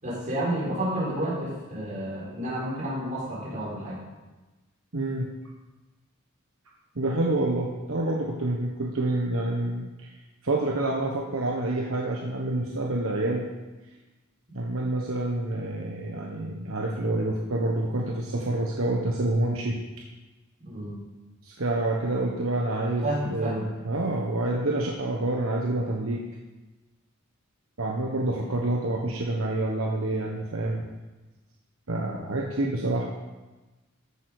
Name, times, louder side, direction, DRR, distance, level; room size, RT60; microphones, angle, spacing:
voice 1, 0.0-4.0 20.6-21.0 23.0-23.7, right 1 dB, 35° right, -5 dB, 4.9 m, -30 dB
voice 2, 4.9-5.3 6.9-10.1 10.4-13.5 14.5-19.8 21.4-26.2 27.8-30.8 31.9-33.1, right 2 dB, 65° right, -1 dB, 1.3 m, -27 dB
14.5 x 8.1 x 5.0 m, 1.2 s
head